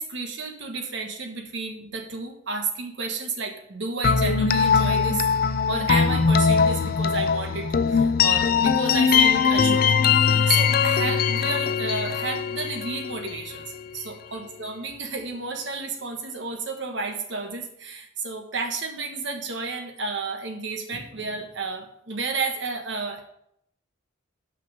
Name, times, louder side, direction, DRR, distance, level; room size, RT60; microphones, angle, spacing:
voice 1, 0.0-5.3 5.7-13.6 13.9-23.2, right 3 dB, 60° right, 4 dB, 1.3 m, -31 dB
sound 1, 4.0-13.8, left 6 dB, 45° left, 0.4 m, -21 dB
6.2 x 5.9 x 6.7 m, 0.71 s
head